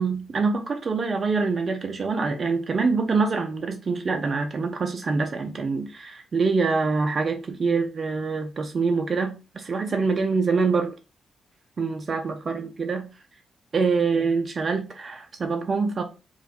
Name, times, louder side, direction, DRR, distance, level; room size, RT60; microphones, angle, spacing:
voice 1, 0.0-10.9 11.8-13.1 13.7-16.0, right 4 dB, 50° right, 0.4 m, -25 dB
2.3 x 2.1 x 2.5 m
hypercardioid pair, 45°, 0 cm